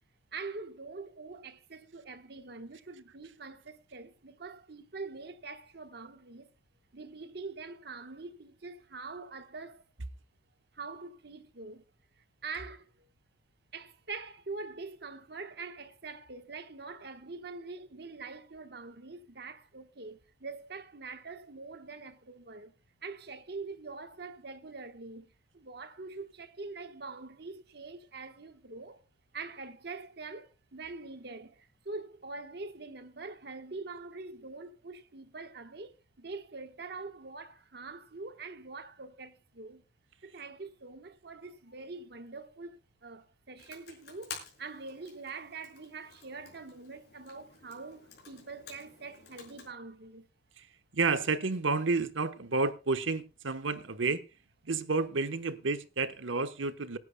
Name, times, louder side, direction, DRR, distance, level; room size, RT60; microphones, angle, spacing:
voice 1, 0.3-6.5 6.9-9.8 10.7-11.8 12.2-13.1 13.7-22.7 23.0-29.0 29.3-39.8 40.2-50.3, right 3 dB, 55° right, 1.2 m, -44 dB
Computer keyboard, 43.6-49.7, left 6 dB, 55° left, 6.1 m, -50 dB
voice 2, 50.9-54.2 54.6-57.0, right 4 dB, 80° right, 1.0 m, -30 dB
26.5 x 10.5 x 2.2 m
head